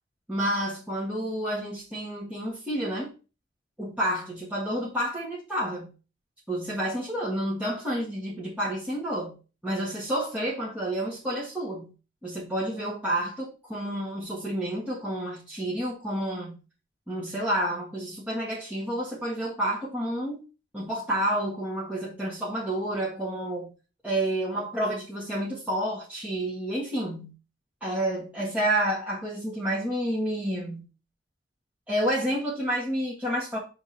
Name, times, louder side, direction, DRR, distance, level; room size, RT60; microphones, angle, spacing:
voice 1, 0.3-3.1 3.8-5.9 6.5-9.3 9.6-11.9 12.2-16.5 17.1-20.4 20.7-23.7 24.0-27.3 27.8-30.8 31.9-33.6, right 1 dB, 10° right, -8 dB, 1.8 m, -29 dB
7.1 x 3.8 x 4.2 m, 0.33 s
head